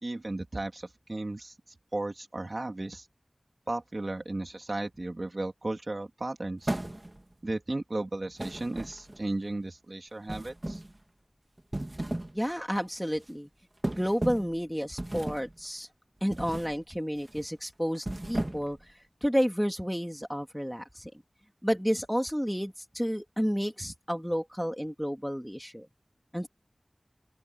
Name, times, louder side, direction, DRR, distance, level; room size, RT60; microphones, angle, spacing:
voice 1, 0.0-1.5 1.9-3.1 3.7-6.8 7.4-10.8, right 2 dB, 60° right, 3.2 m, -35 dB
sound 1, 6.6-7.3 8.4-9.3 10.3-11.0 11.6-12.4 12.7-13.0 13.8-14.6 15.0-15.5 16.3-16.8 17.1-17.4 17.9-18.8, right 1 dB, 35° right, 1.9 m, -35 dB
voice 2, 12.3-13.5 14.0-15.9 16.2-18.9 19.2-21.1 21.6-25.9 26.3-26.5, equal, ahead, 2.6 m, -31 dB
open air
wide cardioid pair, 40°, 0 cm